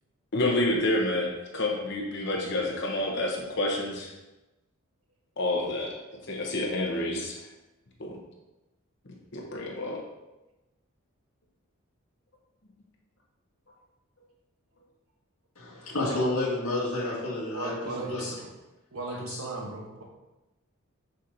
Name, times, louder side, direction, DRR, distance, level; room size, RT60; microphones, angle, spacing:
voice 1, 0.3-4.1 5.4-5.9 6.3-7.4 8.0-8.1 9.3-10.0 18.2-18.3 19.3-19.4, left 1 dB, 55° left, -1 dB, 1.0 m, -29 dB
voice 2, 15.6-18.2, left 2 dB, 90° left, -4 dB, 2.0 m, -30 dB
voice 3, 17.5-18.5 18.9-20.0, right 3 dB, 70° right, 0 dB, 1.2 m, -36 dB
6.6 x 5.9 x 2.8 m, 1.0 s
head